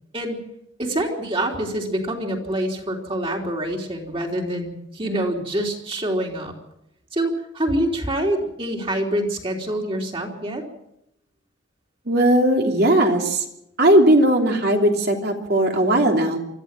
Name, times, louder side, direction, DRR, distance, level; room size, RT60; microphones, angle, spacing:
voice 1, 0.8-6.5 7.1-10.6, right 1 dB, 30° right, 1 dB, 3.5 m, -26 dB
voice 2, 12.1-13.4 13.8-16.4, right 1 dB, 55° right, 2 dB, 3.1 m, -17 dB
24.5 x 14.5 x 7.6 m, 0.82 s
head